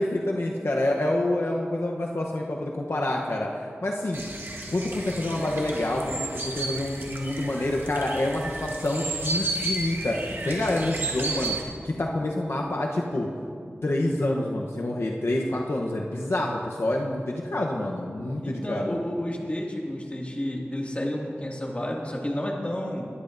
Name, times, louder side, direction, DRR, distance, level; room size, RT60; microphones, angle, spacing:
voice 1, 0.0-4.2 4.7-13.3 13.8-19.0, left 1 dB, 70° left, -1 dB, 0.9 m, -27 dB
sound 1, 4.1-11.6, right 2 dB, 60° right, 1.5 m, -33 dB
voice 2, 18.4-23.1, left 1 dB, 30° left, -2 dB, 2.1 m, -31 dB
20.5 x 11.0 x 2.6 m, 2.3 s
wide cardioid pair, 45°, 4 cm